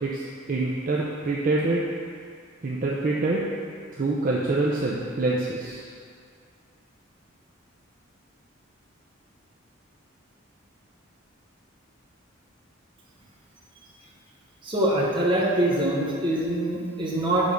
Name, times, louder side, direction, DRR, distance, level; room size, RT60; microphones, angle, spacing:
voice 1, 0.0-1.9 2.6-3.4 4.0-5.9, right 2 dB, 40° right, -4 dB, 0.5 m, -26 dB
voice 2, 14.6-17.5, right 1 dB, 25° right, -5 dB, 1.0 m, -24 dB
6.7 x 3.5 x 5.2 m, 2.3 s
head